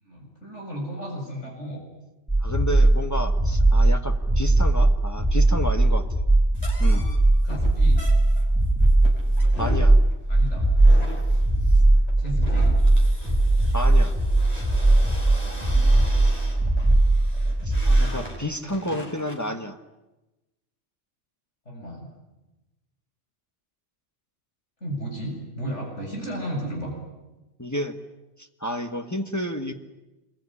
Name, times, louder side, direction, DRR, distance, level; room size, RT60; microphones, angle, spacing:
voice 1, 0.0-1.8 6.9-7.1 7.4-8.0 10.3-10.7 12.2-12.7 21.7-22.1 24.8-26.9, right 1 dB, 75° left, 1 dB, 7.5 m, -34 dB
sound 1, 2.3-18.1, right 2 dB, 5° right, 1.7 m, -19 dB
voice 2, 2.4-6.1 6.8-7.1 9.6-10.0 13.7-14.2 15.8-16.1 17.6-19.8 27.6-28.0 28.4-29.7, left 1 dB, 15° left, 5 dB, 1.5 m, -31 dB
sound 2, 6.5-19.5, equal, 35° left, 5.8 m, -41 dB
26.0 x 22.0 x 9.9 m, 1.0 s
omnidirectional pair, 1.2 m